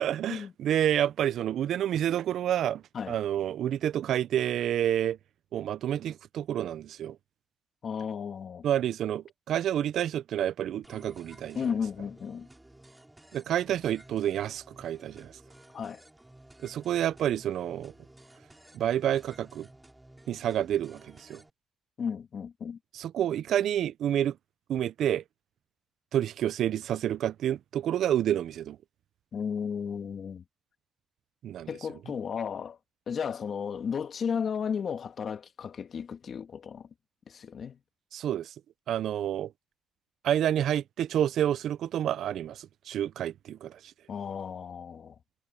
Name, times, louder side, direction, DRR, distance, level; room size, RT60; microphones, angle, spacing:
voice 1, 0.0-5.2 5.5-7.2 8.6-11.6 13.3-15.3 16.6-17.9 18.7-19.7 20.3-21.4 22.9-24.4 24.7-25.2 26.1-28.8 31.4-31.7 38.1-38.5 38.9-39.5 40.2-43.8, right 10 dB, 70° right, 0.4 m, -29 dB
voice 2, 7.8-8.6 11.5-12.5 15.7-16.0 22.0-22.8 29.3-30.4 31.7-32.8 33.1-36.9 37.3-37.8 44.1-45.2, left 7 dB, 50° left, 2.4 m, -34 dB
sound 1, 10.8-21.5, right 1 dB, 10° right, 5.0 m, -54 dB
cardioid pair, 90°, 0 cm